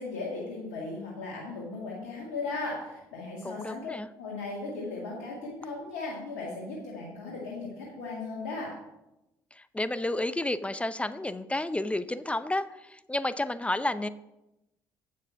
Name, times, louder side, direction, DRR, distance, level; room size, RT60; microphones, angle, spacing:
voice 1, 0.0-3.9 4.2-8.7, left 3 dB, 85° left, -4 dB, 2.0 m, -37 dB
voice 2, 3.4-4.1 9.6-14.1, left 1 dB, 15° left, 14 dB, 0.6 m, -31 dB
9.0 x 7.4 x 5.7 m, 0.93 s
hypercardioid pair, 60°, 9 cm